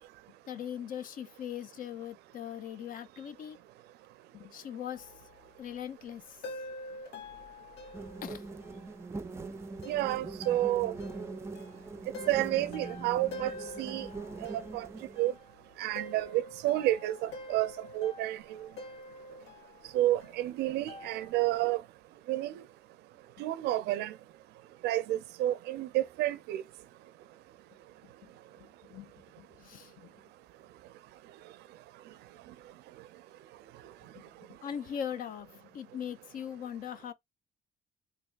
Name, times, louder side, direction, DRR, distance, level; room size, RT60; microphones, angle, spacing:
voice 1, 0.5-3.6 4.3-5.1 5.6-6.5 8.2-8.4 28.0-28.3 28.6-29.1 29.4-30.1 34.1-37.1, left 9 dB, 55° left, 0.6 m, -41 dB
sound 1, 5.0-5.8 6.4-8.9 9.8-15.4 15.7-19.9 20.2-20.3 20.9-21.5, left 2 dB, 80° left, 1.2 m, -47 dB
sound 2, 7.9-15.4, right 3 dB, 15° right, 0.4 m, -42 dB
voice 2, 9.9-10.9 12.3-14.1 14.4-14.9 15.2-15.3 15.8-18.7 19.9-21.8 22.3-22.6 23.4-24.2 24.8-26.6, right 15 dB, 80° right, 0.4 m, -30 dB
3.5 x 3.3 x 2.4 m
cardioid pair, 110°, 17 cm